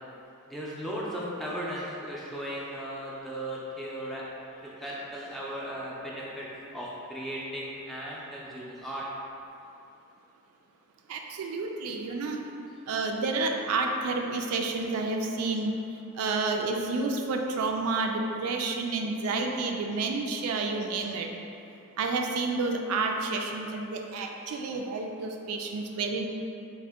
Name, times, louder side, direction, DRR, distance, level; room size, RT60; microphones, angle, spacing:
voice 1, 0.5-4.2 4.6-9.1, equal, ahead, -6 dB, 0.4 m, -36 dB
voice 2, 11.1-12.4 12.9-15.8 16.1-21.3 22.0-26.3, right 3 dB, 80° right, 4 dB, 0.3 m, -30 dB
3.5 x 2.1 x 3.4 m, 2.7 s
head